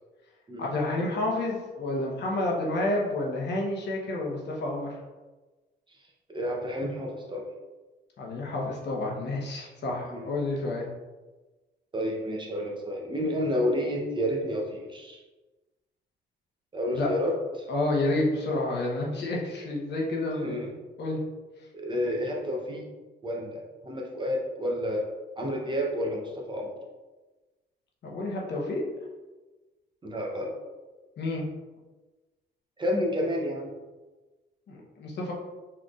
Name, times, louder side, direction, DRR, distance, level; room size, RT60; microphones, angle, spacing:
voice 1, 0.6-4.9 8.2-10.9 16.9-17.1 17.7-21.2 28.0-28.8 31.2-31.5 34.7-35.3, left 2 dB, 60° left, -3 dB, 1.0 m, -29 dB
voice 2, 6.3-7.4 10.0-10.3 11.9-15.2 16.7-17.7 20.4-20.7 21.7-22.8 23.2-25.1 25.4-26.7 30.0-30.5 32.8-33.7, equal, 25° right, -1 dB, 0.8 m, -30 dB
4.0 x 3.3 x 2.4 m, 1.2 s
cardioid pair, 90°, 20 cm